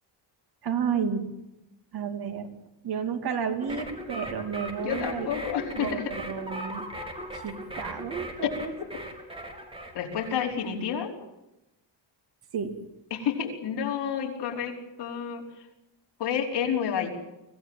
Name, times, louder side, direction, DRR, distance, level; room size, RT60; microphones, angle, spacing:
voice 1, 0.6-1.3 1.9-2.5 2.8-5.3 5.8-6.8 7.3-8.7 12.5-12.8, right 7 dB, 50° right, 6 dB, 2.8 m, -31 dB
sound 1, 3.6-10.7, equal, 10° right, 3.1 m, -39 dB
voice 2, 4.8-6.1 9.9-11.1 13.1-15.4 16.2-17.1, left 8 dB, 60° left, 1 dB, 5.1 m, -30 dB
25.5 x 17.5 x 9.2 m, 0.91 s
cardioid pair, 175°, 46 cm